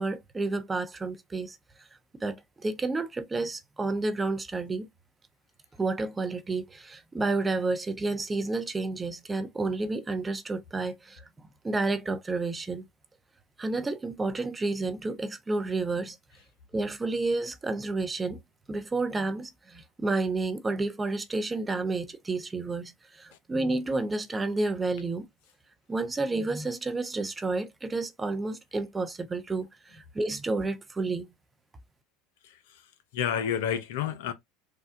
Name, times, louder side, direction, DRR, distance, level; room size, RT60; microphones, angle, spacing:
voice 1, 0.0-1.6 2.2-2.4 2.6-4.9 5.8-11.2 11.6-12.8 13.6-16.2 16.7-18.4 18.7-25.3 25.9-31.3, right 3 dB, 15° right, 0.6 m, -30 dB
voice 2, 32.4-34.3, left 9 dB, 65° left, 0.5 m, -31 dB
4.2 x 2.3 x 2.5 m
figure-of-eight pair, 75°, 0 cm